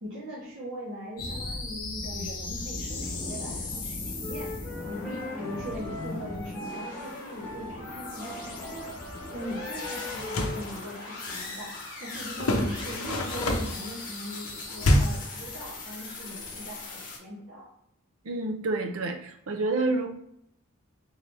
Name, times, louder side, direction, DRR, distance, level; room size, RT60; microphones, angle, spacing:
voice 1, 0.0-8.9 9.3-17.7, equal, 55° right, -9 dB, 1.2 m, -40 dB
sound 1, 1.2-17.2, left 2 dB, 40° left, 0.8 m, -38 dB
Wind instrument woodwind instrument, 4.2-10.6, left 2 dB, 10° left, 0.5 m, -41 dB
sound 2, 10.1-10.6 12.4-13.9 14.8-15.3, left 1 dB, 85° left, 0.6 m, -25 dB
voice 2, 18.2-20.1, right 2 dB, 80° right, 5 dB, 0.6 m, -28 dB
3.8 x 2.8 x 3.3 m, 0.73 s
head